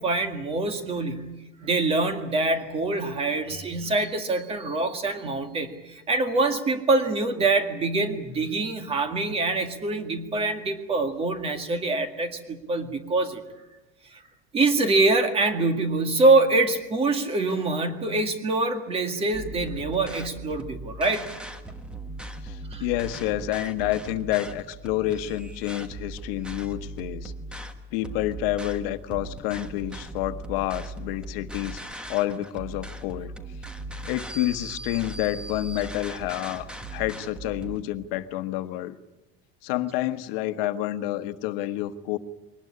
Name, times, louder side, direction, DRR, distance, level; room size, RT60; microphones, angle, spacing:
voice 1, 0.0-1.4 1.6-13.4 14.1-14.2 14.5-21.3 22.7-22.8, right 3 dB, 20° right, 7 dB, 1.9 m, -25 dB
sound 1, 19.3-37.8, right 2 dB, 5° right, 1.2 m, -39 dB
voice 2, 22.4-27.3 27.9-31.8 32.1-33.3 34.1-39.0 39.6-42.2, left 14 dB, 75° left, 11 dB, 1.3 m, -29 dB
23.0 x 19.0 x 9.8 m, 1.0 s
cardioid pair, 180°, 29 cm